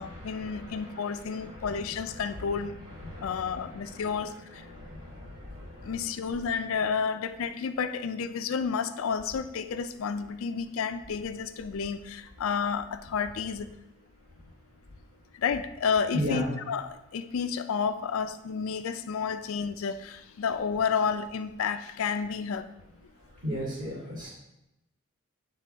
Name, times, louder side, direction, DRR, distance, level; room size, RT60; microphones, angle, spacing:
voice 1, 0.0-2.7 3.2-4.4 5.8-13.7 15.4-22.7, left 6 dB, 80° left, 0.4 m, -31 dB
voice 2, 16.1-16.5 23.4-24.3, equal, 40° right, 2.3 m, -31 dB
8.4 x 3.3 x 3.4 m
head